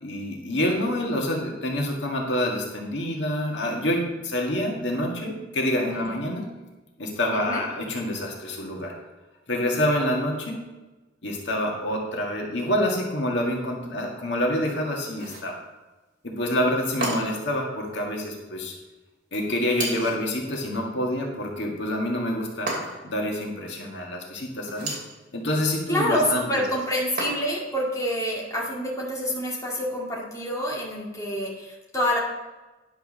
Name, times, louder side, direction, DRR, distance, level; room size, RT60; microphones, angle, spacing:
voice 1, 0.0-6.5 7.0-8.9 9.5-10.6 11.2-15.6 16.2-18.7 19.3-25.0 25.3-26.6, left 1 dB, 75° left, -1 dB, 1.8 m, -27 dB
voice 2, 7.3-7.6 25.9-32.2, equal, 20° left, -4 dB, 2.2 m, -27 dB
sound 1, 15.1-15.6 17.0-17.5 19.7-20.3 22.7-23.2 24.6-25.1 27.2-27.7, right 2 dB, 50° right, 2.7 m, -32 dB
10.5 x 4.8 x 6.1 m, 1.2 s
head